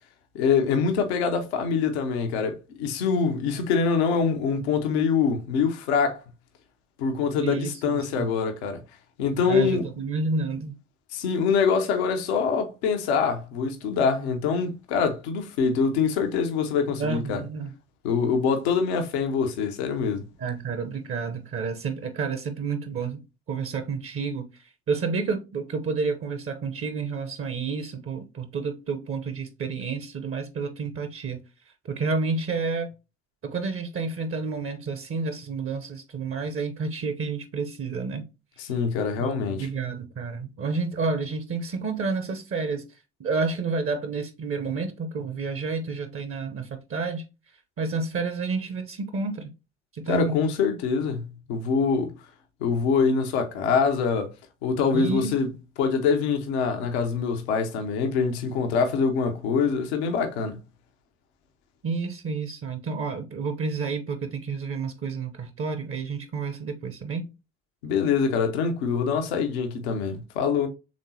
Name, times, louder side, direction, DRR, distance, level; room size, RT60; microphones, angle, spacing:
voice 1, 0.3-6.2 7.0-8.8 9.2-9.8 11.1-17.4 18.0-20.3 38.6-39.7 50.1-52.1 52.6-54.3 54.6-55.5 55.8-60.6 67.8-70.7, left 5 dB, 75° left, 0.8 m, -24 dB
voice 2, 7.4-8.3 9.4-10.8 17.0-17.7 20.4-23.2 23.5-24.5 24.9-31.4 31.8-32.9 33.4-38.3 39.2-42.9 43.2-47.2 47.8-49.5 49.9-50.4 54.9-55.3 61.8-67.3, right 4 dB, 40° right, 0.8 m, -30 dB
5.2 x 3.6 x 2.7 m
figure-of-eight pair, 45°, 33 cm